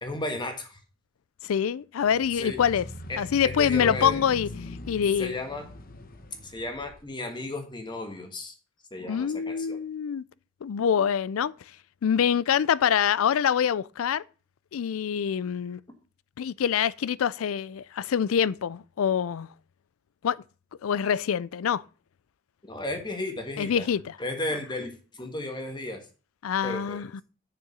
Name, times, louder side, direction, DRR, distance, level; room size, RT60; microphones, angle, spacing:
voice 1, 0.0-0.8 2.4-2.6 3.1-4.2 5.2-5.6 6.4-8.5 8.9-9.8 22.7-23.9 24.2-26.0 26.6-27.0, left 2 dB, 20° left, 1.5 m, -34 dB
voice 2, 1.4-2.9 3.2-4.5 4.9-5.4 9.1-10.2 10.6-11.5 12.0-14.2 14.7-15.8 16.4-19.5 20.2-20.4 20.8-21.8 23.6-24.2 26.4-27.2, left 8 dB, 85° left, 0.4 m, -25 dB
sound 1, 2.0-7.0, left 1 dB, 45° left, 1.0 m, -40 dB
6.9 x 6.5 x 6.1 m
head